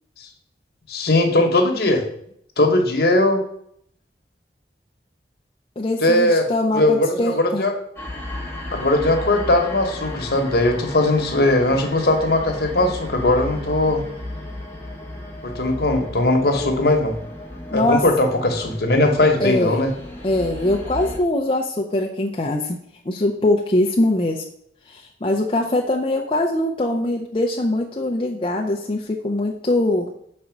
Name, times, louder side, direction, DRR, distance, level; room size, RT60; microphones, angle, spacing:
voice 1, 0.9-2.0 2.6-3.4 6.0-6.4 6.7-7.7 8.7-14.0 15.4-17.2 17.7-19.9, left 2 dB, 60° left, 3 dB, 1.2 m, -19 dB
voice 2, 5.8-7.6 17.7-18.0 19.4-19.8 20.2-22.8 23.1-24.4 24.9-30.1, left 1 dB, 30° left, -1 dB, 0.5 m, -22 dB
sound 1, 8.0-21.2, left 1 dB, 15° left, 1.1 m, -34 dB
5.2 x 4.2 x 5.9 m, 0.67 s
head